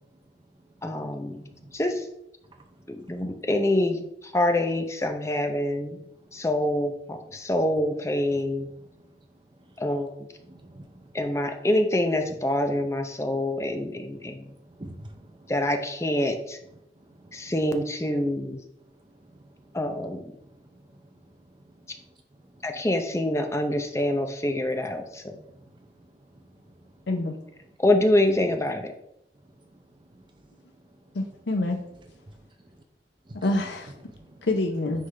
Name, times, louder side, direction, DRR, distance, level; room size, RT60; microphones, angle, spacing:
voice 1, 0.8-1.4 1.7-2.1 2.9-6.0 6.3-8.7 9.8-10.3 11.1-14.6 15.5-16.6 17.3-18.6 19.7-20.3 21.9-22.0 22.6-25.4 27.8-28.9, left 1 dB, 15° left, 0.6 m, -26 dB
voice 2, 2.5-3.2 6.3-6.4 9.1-9.3 9.7-9.8 10.4-11.1 14.5-15.5 17.0-17.5 19.1-19.8 20.4-22.1 22.4-22.6 25.5-27.1 29.4-30.6 30.9-31.0 32.2-32.8 33.3-33.5 34.0-34.5, right 1 dB, 25° right, 0.6 m, -51 dB
voice 3, 31.1-31.8 33.3-33.9 34.4-35.1, left 2 dB, 90° left, 0.6 m, -27 dB
9.7 x 3.6 x 3.3 m
head